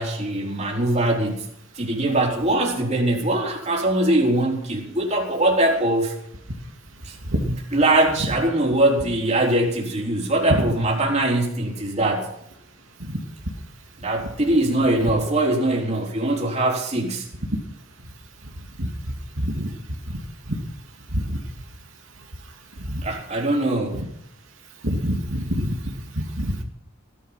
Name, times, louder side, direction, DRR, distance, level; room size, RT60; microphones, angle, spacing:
voice 1, 0.0-1.4 1.8-6.1 7.0-12.3 14.0-17.3 23.0-24.1, right 1 dB, 35° right, 3.9 m, -22 dB
voice 2, 19.4-19.7 20.1-20.2 21.1-21.2 22.9-23.0 24.8-25.8 26.2-26.6, equal, 80° right, 2.7 m, -25 dB
17.0 x 12.0 x 5.9 m
head